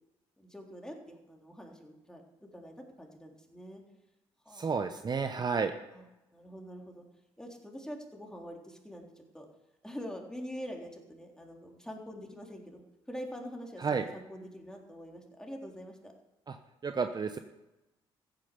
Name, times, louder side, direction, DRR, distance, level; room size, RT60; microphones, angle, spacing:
voice 1, 0.4-2.2 2.5-3.8 4.4-4.8 5.9-6.0 6.3-7.0 7.4-9.1 9.3-9.4 9.8-16.1, equal, 5° left, 1 dB, 3.5 m, -45 dB
voice 2, 4.5-5.7 13.8-14.0 16.5-16.6 16.8-17.4, right 5 dB, 35° right, 8 dB, 1.0 m, -31 dB
14.5 x 9.1 x 6.8 m, 0.97 s
hypercardioid pair, 55°, 13 cm